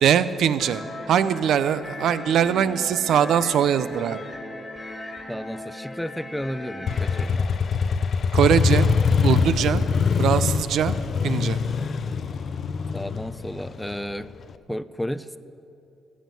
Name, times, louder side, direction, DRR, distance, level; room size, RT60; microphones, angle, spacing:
voice 1, 0.0-0.8 1.1-4.2 8.3-8.9 9.2-9.8 10.2-10.9 11.2-11.6, right 9 dB, 75° right, 14 dB, 0.5 m, -21 dB
sound 1, 0.6-7.3, left 2 dB, 20° left, 1.6 m, -38 dB
voice 2, 5.3-7.5 12.9-14.3 14.7-15.4, equal, 5° left, 15 dB, 0.4 m, -32 dB
Motorcycle, 6.9-14.5, left 5 dB, 50° left, 0.5 m, -23 dB
13.5 x 7.3 x 7.5 m, 2.7 s
cardioid pair, 90°, 0 cm